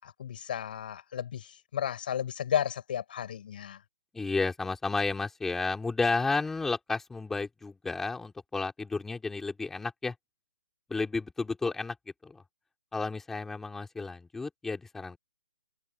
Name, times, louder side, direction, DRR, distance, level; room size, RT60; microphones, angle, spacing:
voice 1, 0.0-3.8, left 9 dB, 50° left, 6.8 m, -33 dB
voice 2, 4.1-10.1 10.9-12.0 12.2-12.4 12.9-15.2, left 3 dB, 5° left, 4.2 m, -32 dB
hypercardioid pair, 155°, 6 cm